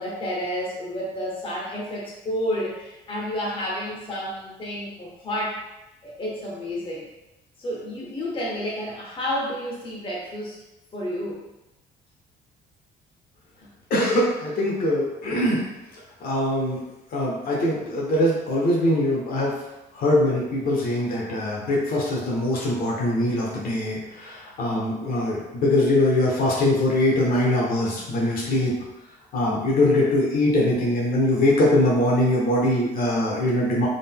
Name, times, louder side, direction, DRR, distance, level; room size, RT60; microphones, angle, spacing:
voice 1, 0.0-5.6 6.0-7.0 7.6-10.6 10.9-11.4, equal, 30° left, -4 dB, 1.1 m, -30 dB
voice 2, 13.9-15.6 16.2-16.8 17.1-19.5 19.9-28.7 29.3-33.9, left 1 dB, 60° left, -4 dB, 1.1 m, -22 dB
3.9 x 3.7 x 2.2 m, 0.96 s
cardioid pair, 110°, 17 cm